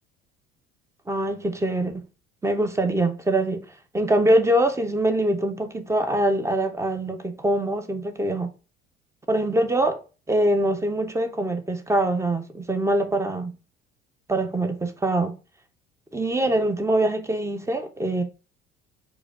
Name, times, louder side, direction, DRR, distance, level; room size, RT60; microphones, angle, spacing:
voice 1, 1.1-2.1 2.4-3.7 3.9-8.5 9.3-10.0 10.3-13.5 14.3-15.4 16.1-18.2, right 1 dB, 10° right, 0.7 m, -23 dB
4.9 x 2.2 x 3.6 m
hypercardioid pair, 60°, 29 cm